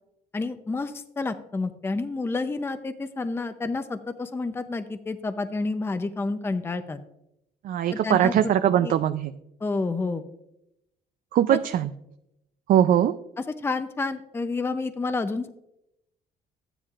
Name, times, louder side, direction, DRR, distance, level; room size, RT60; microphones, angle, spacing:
voice 1, 0.3-7.0 7.9-8.5 8.8-8.9 9.6-10.2 11.5-11.6 13.6-15.5, left 3 dB, 15° left, 9 dB, 0.6 m, -29 dB
voice 2, 7.6-9.3 11.3-11.9 12.7-13.1, right 10 dB, 55° right, 10 dB, 0.4 m, -21 dB
13.0 x 9.9 x 2.4 m, 0.83 s
cardioid pair, 110°, 17 cm